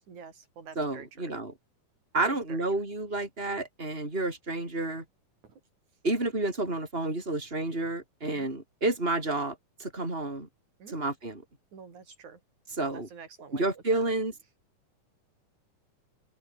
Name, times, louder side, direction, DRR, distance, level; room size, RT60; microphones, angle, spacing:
voice 1, 0.1-1.3 2.2-2.6 3.2-3.3 8.2-8.5 10.8-11.0 11.7-12.4 12.8-13.6, right 6 dB, 65° right, 5.8 m, -47 dB
voice 2, 0.8-1.5 2.1-5.0 6.0-10.5 10.9-11.4 12.7-13.1 13.5-14.3, right 2 dB, 15° right, 7.3 m, -30 dB
open air
omnidirectional pair, 3.6 m